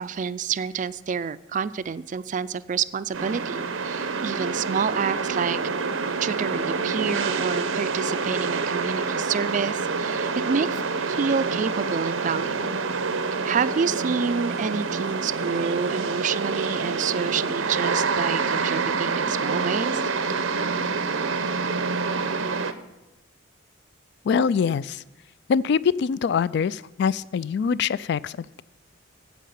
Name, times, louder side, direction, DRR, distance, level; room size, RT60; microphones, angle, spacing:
voice 1, 0.0-5.6 6.2-12.7 13.4-20.1, right 6 dB, 40° right, 16 dB, 0.3 m, -28 dB
sound 1, 3.1-22.7, right 4 dB, 90° right, 0.8 m, -27 dB
voice 2, 24.3-25.0 25.5-28.6, left 6 dB, 60° left, 19 dB, 0.3 m, -24 dB
9.4 x 8.3 x 6.9 m, 1.0 s
head